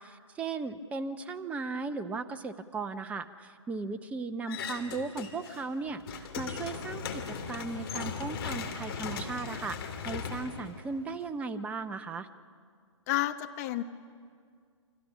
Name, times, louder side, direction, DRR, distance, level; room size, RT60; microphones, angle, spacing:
voice 1, 0.0-12.3, right 4 dB, 10° right, 10 dB, 0.6 m, -37 dB
sound 1, 4.5-5.6 5.9-11.3, left 6 dB, 50° left, 2.8 m, -38 dB
voice 2, 13.1-13.8, left 15 dB, 30° left, 8 dB, 1.1 m, -30 dB
29.5 x 24.5 x 6.2 m, 2.1 s
figure-of-eight pair, 135°, 16 cm